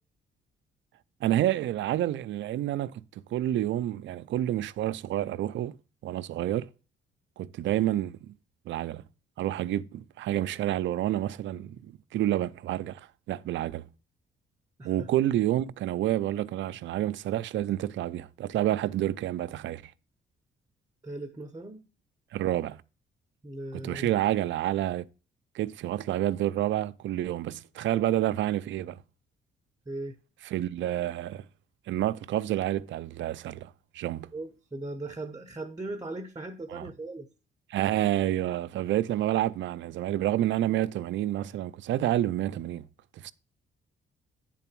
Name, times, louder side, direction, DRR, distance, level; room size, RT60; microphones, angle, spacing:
voice 1, 1.2-3.0 3.3-5.8 6.0-6.7 7.4-8.3 8.7-9.0 9.4-13.0 13.3-13.9 14.8-19.9 22.3-22.8 23.7-25.1 25.5-29.0 30.5-31.5 31.9-34.3 36.7-36.9 37.7-42.8 43.2-43.3, right 13 dB, 70° right, 0.5 m, -29 dB
voice 2, 21.0-21.8 23.4-24.1 29.9-30.2 34.3-37.3, right 2 dB, 20° right, 0.8 m, -38 dB
9.1 x 3.8 x 5.9 m
cardioid pair, 90°, 20 cm